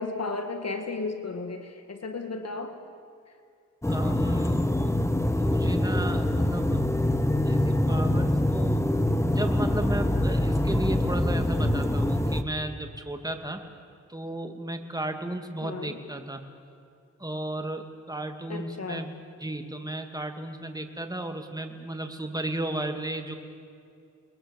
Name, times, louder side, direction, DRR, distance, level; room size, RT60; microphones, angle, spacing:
voice 1, 0.0-2.8 15.6-16.0 18.5-19.1, left 3 dB, 60° left, 6 dB, 2.0 m, -34 dB
sound 1, 3.8-12.4, left 1 dB, 10° left, 1.5 m, -24 dB
voice 2, 3.9-4.6 5.3-6.8 7.5-8.9 9.3-13.6 14.1-16.4 17.2-23.3, right 1 dB, 15° right, 5 dB, 2.6 m, -34 dB
29.0 x 21.5 x 7.3 m, 2.4 s
cardioid pair, 55°, 30 cm